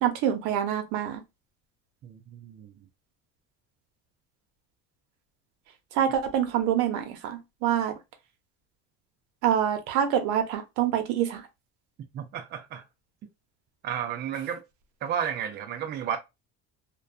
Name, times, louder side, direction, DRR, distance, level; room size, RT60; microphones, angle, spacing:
voice 1, 0.0-1.2 6.0-7.9 9.4-11.4, right 9 dB, 75° right, 0.7 m, -26 dB
voice 2, 2.0-2.7 12.1-12.8 13.8-14.6 15.0-16.2, right 8 dB, 35° right, 0.4 m, -32 dB
2.2 x 2.2 x 2.5 m
cardioid pair, 135°, 30 cm